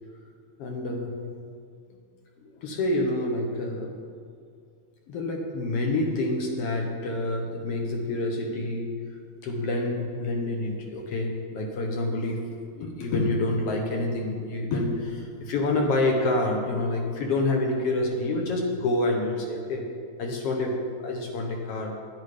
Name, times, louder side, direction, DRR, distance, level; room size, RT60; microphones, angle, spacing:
voice 1, 0.6-1.2 2.4-3.9 5.1-9.0 9.4-19.9 20.2-21.9, left 2 dB, 65° left, 1 dB, 1.7 m, -27 dB
11.0 x 8.2 x 5.0 m, 2.2 s
omnidirectional pair, 3.5 m